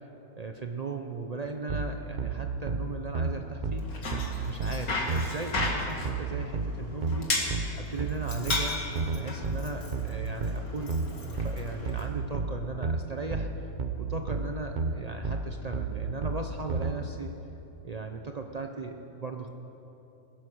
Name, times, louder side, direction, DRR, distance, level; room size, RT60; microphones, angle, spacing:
voice 1, 0.3-3.9 4.4-7.3 7.7-8.8 9.1-11.0 11.2-13.5 14.0-17.3 17.8-19.5, right 4 dB, 70° right, 4 dB, 0.3 m, -37 dB
sound 1, 1.7-16.9, right 3 dB, 40° right, 0.7 m, -31 dB
Bicycle, 3.8-12.1, left 2 dB, 55° left, 2.2 m, -35 dB
21.0 x 10.5 x 6.2 m, 2.9 s
omnidirectional pair, 1.9 m